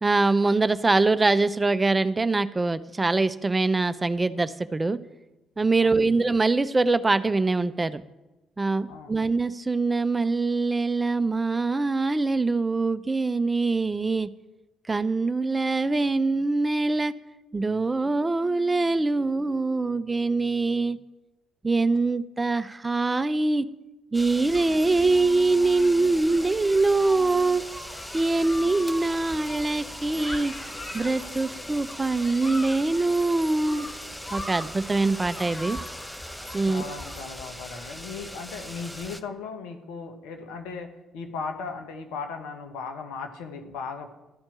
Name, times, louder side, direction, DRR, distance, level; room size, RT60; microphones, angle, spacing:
voice 1, 0.0-5.0 5.6-8.0 8.6-14.3 14.9-17.1 17.5-21.0 21.6-23.7 24.1-27.6 28.1-30.5 30.9-33.9 34.3-35.8 36.5-36.8, right 3 dB, 25° right, 13 dB, 0.6 m, -23 dB
voice 2, 5.8-6.1 8.9-9.1 36.6-40.9 41.1-44.1, left 5 dB, 70° left, 5 dB, 1.1 m, -37 dB
sound 1, 24.1-39.2, equal, 5° left, 0.8 m, -40 dB
Human group actions, 24.5-37.2, left 1 dB, 30° left, 1.9 m, -42 dB
13.0 x 4.4 x 8.6 m, 1.0 s
figure-of-eight pair, 45°, 0 cm